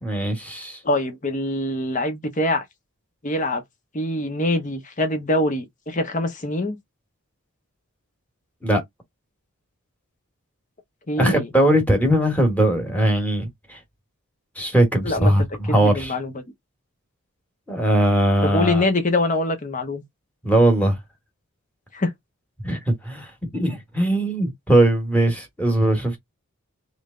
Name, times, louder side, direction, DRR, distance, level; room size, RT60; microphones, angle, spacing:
voice 1, 0.0-0.8 8.6-8.8 11.2-13.8 14.6-16.1 17.7-18.8 20.4-21.0 22.6-26.2, right 1 dB, 5° left, 1.3 m, -20 dB
voice 2, 0.8-2.6 3.2-3.6 3.9-6.8 11.1-11.5 15.0-15.3 15.7-16.4 18.4-20.0 21.9-22.1, left 1 dB, 35° left, 1.0 m, -24 dB
3.3 x 3.2 x 3.7 m
head